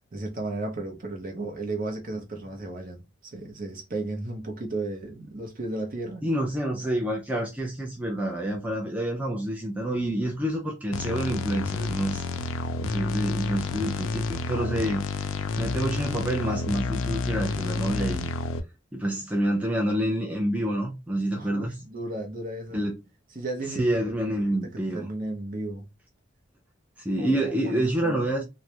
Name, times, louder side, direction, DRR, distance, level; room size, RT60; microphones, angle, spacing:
voice 1, 0.0-6.2 21.3-22.9 23.3-25.9 27.2-28.2, right 2 dB, 45° right, 0.6 m, -34 dB
voice 2, 6.2-12.2 12.8-15.1 15.5-18.3 18.9-21.7 22.7-22.9 23.8-25.1 27.0-28.4, right 1 dB, 5° right, 0.4 m, -28 dB
sound 1, 10.9-18.6, left 3 dB, 80° left, 0.4 m, -30 dB
2.3 x 2.0 x 2.7 m
head